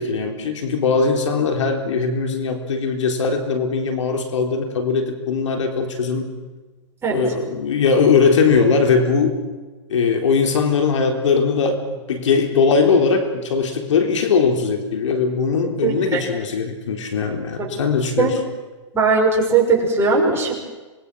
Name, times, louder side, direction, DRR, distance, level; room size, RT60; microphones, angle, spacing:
voice 1, 0.0-6.3 7.1-9.4 9.9-18.4, left 5 dB, 80° left, 5 dB, 3.8 m, -20 dB
voice 2, 15.8-16.2 17.6-17.7 18.2-18.3 18.9-20.5, right 4 dB, 15° right, -2 dB, 6.0 m, -18 dB
26.5 x 21.5 x 6.3 m, 1.3 s
hypercardioid pair, 135°, 16 cm